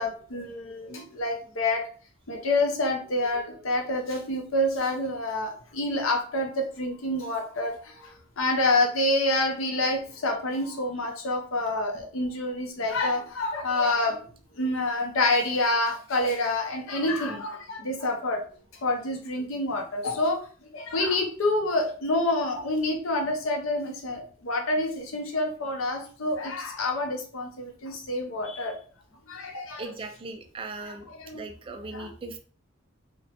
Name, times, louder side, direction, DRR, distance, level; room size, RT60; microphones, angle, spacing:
voice 1, 0.0-1.8 2.3-14.3 14.5-18.4 18.8-20.4 20.7-28.7 29.3-29.9 30.8-31.4 31.9-32.1, left 2 dB, 85° left, 3 dB, 0.6 m, -27 dB
voice 2, 29.5-32.4, right 3 dB, 25° right, 6 dB, 0.3 m, -39 dB
2.9 x 2.1 x 2.8 m, 0.41 s
head